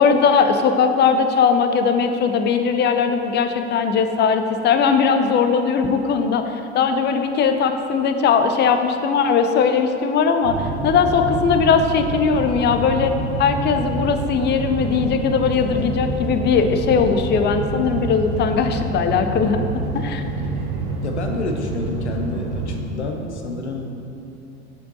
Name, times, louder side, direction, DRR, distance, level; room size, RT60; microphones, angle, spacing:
voice 1, 0.0-6.4 6.7-13.1 13.4-19.7 19.9-20.2, left 6 dB, 35° left, 7 dB, 0.5 m, -19 dB
sound 1, 10.4-22.8, right 2 dB, 75° right, 0.8 m, -27 dB
voice 2, 21.0-23.9, left 2 dB, 85° left, 3 dB, 0.7 m, -29 dB
7.6 x 6.4 x 2.7 m, 2.8 s
figure-of-eight pair, 70°, 33 cm